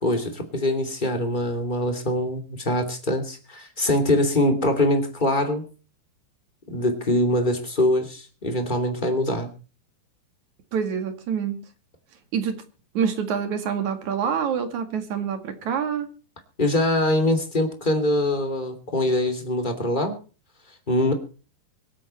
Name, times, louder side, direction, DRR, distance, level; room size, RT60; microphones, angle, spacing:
voice 1, 0.0-5.6 6.7-9.5 16.6-20.1 20.9-21.1, left 1 dB, 15° left, 4 dB, 2.0 m, -23 dB
voice 2, 10.7-11.6 12.3-12.6 12.9-16.1, right 7 dB, 50° right, 8 dB, 2.9 m, -26 dB
24.5 x 8.7 x 4.3 m, 0.37 s
omnidirectional pair, 4.8 m